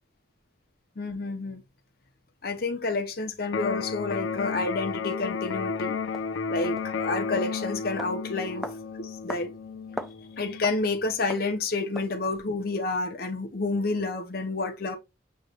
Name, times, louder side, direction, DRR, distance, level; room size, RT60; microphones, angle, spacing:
voice 1, 1.0-1.6 2.4-6.0 6.5-8.7 9.0-9.5 10.4-15.0, left 3 dB, 50° left, 0.8 m, -29 dB
Electric guitar, 3.5-11.5, left 5 dB, 90° left, 0.5 m, -33 dB
sound 1, 5.0-5.2 6.1-6.2 6.8-6.9 7.4-7.5 8.0-8.1 8.6-8.8 9.3-9.5 9.7-10.2 10.6-10.8 11.3-11.5 11.9-12.1, equal, ahead, 0.3 m, -37 dB
6.5 x 3.2 x 2.4 m
head